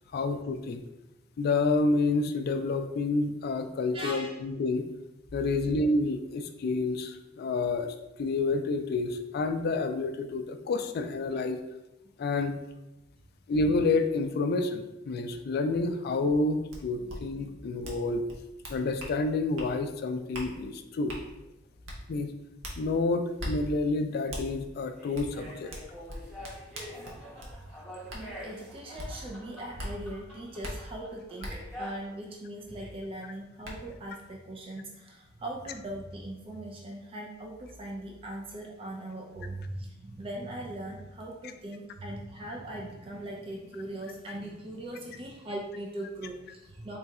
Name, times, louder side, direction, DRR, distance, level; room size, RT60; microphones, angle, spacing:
voice 1, 0.1-0.8 1.4-4.9 5.3-11.6 12.2-12.6 13.5-18.3 18.7-21.2 22.1-22.3 22.8-25.7, left 3 dB, 55° left, 9 dB, 0.3 m, -29 dB
voice 2, 3.9-4.4 17.0-17.1 17.5-17.6 27.6-27.7 28.1-47.0, right 1 dB, 30° right, -1 dB, 0.4 m, -40 dB
sound 1, 16.7-16.8 17.1-17.2 17.8-18.0 18.3-19.1 19.6-19.7 20.3-20.5 21.1-21.2 21.8-22.0 22.6-22.8 23.4-23.5 24.3-24.4 25.1-25.3 25.7-27.5 28.1-28.2 29.0-29.1 29.8-29.9 30.6-30.7 31.4-31.5 33.0-33.1 33.6-33.7, equal, 85° right, 0.9 m, -39 dB
sound 2, 23.3-23.4 24.1-32.1 32.6-33.0, equal, ahead, 1.0 m, -46 dB
3.7 x 2.3 x 4.1 m, 0.94 s
head